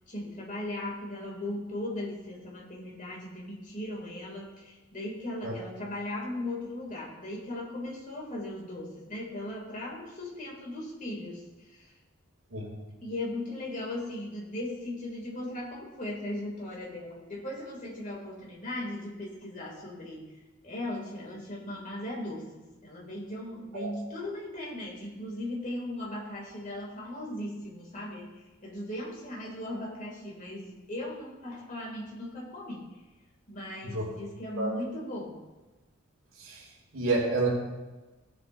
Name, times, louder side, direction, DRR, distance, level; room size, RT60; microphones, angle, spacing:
voice 1, 0.1-11.9 13.0-20.2 20.6-32.9 33.5-35.4, left 1 dB, 40° left, -2 dB, 2.6 m, -38 dB
voice 2, 36.9-37.5, right 3 dB, 80° right, -4 dB, 2.5 m, -29 dB
17.0 x 7.9 x 2.7 m, 1.2 s
head